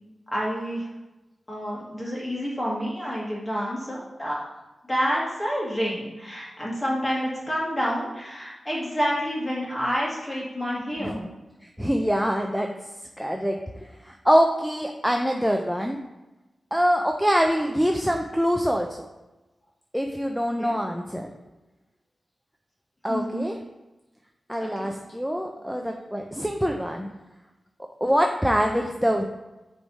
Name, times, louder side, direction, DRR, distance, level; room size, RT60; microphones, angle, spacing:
voice 1, 0.3-0.9 1.5-4.4 4.9-11.2 20.6-20.8 23.1-23.5 24.6-24.9, equal, 20° left, -5 dB, 2.0 m, -28 dB
voice 2, 11.8-12.7 13.2-16.0 16.7-19.1 19.9-21.3 23.0-23.6 24.5-27.1 28.0-29.2, equal, ahead, 2 dB, 0.5 m, -24 dB
9.2 x 3.6 x 4.1 m, 1.1 s
wide cardioid pair, 130°, 0 cm